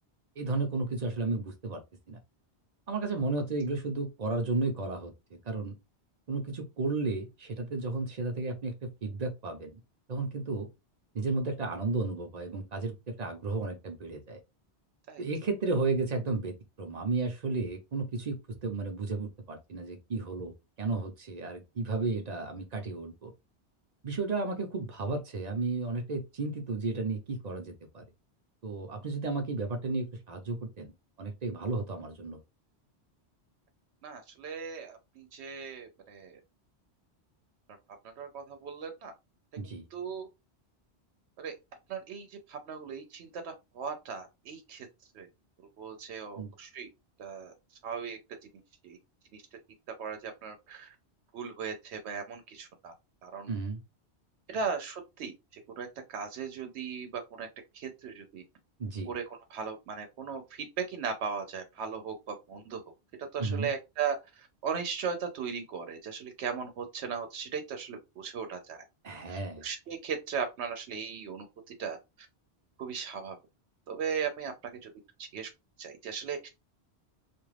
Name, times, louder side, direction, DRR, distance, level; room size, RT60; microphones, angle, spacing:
voice 1, 0.4-1.8 2.1-2.2 2.9-5.1 5.5-5.7 6.3-8.7 9.0-9.8 10.1-10.7 11.1-14.4 15.2-18.4 18.6-20.5 20.8-23.3 24.0-28.0 28.6-30.9 31.2-32.4 39.6-39.9 46.4-46.5 53.5-53.8 58.8-59.1 63.4-63.7 69.0-69.6, right 3 dB, 45° right, 0.7 m, -33 dB
voice 2, 34.0-36.4 38.2-39.1 39.9-40.3 41.4-41.5 41.9-44.9 45.1-45.3 45.8-46.9 47.2-47.5 47.8-48.2 48.8-49.0 49.3-49.4 50.0-51.0 51.3-52.9 53.2-53.5 54.5-57.5 57.7-58.4 59.1-62.8 63.2-68.8 69.3-72.0 72.8-73.3 73.9-74.5 74.8-74.9 75.2-75.5 75.8-76.5, right 6 dB, 80° right, 0.9 m, -37 dB
2.5 x 2.3 x 3.2 m
omnidirectional pair, 1.1 m